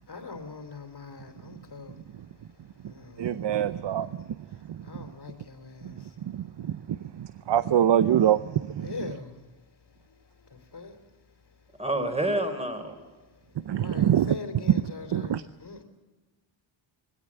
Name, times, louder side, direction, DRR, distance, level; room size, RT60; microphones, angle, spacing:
voice 1, 0.0-6.8 7.2-7.5 8.8-11.8 13.1-15.8, left 4 dB, 50° left, 7 dB, 3.1 m, -44 dB
voice 2, 3.2-4.1 4.7-4.8 5.8-5.9 6.2-8.9 13.7-14.3 15.1-15.4, right 10 dB, 60° right, 14 dB, 0.7 m, -25 dB
voice 3, 11.8-12.9, right 1 dB, 10° right, 6 dB, 4.1 m, -28 dB
20.5 x 17.0 x 9.8 m, 1.3 s
cardioid pair, 80°, 49 cm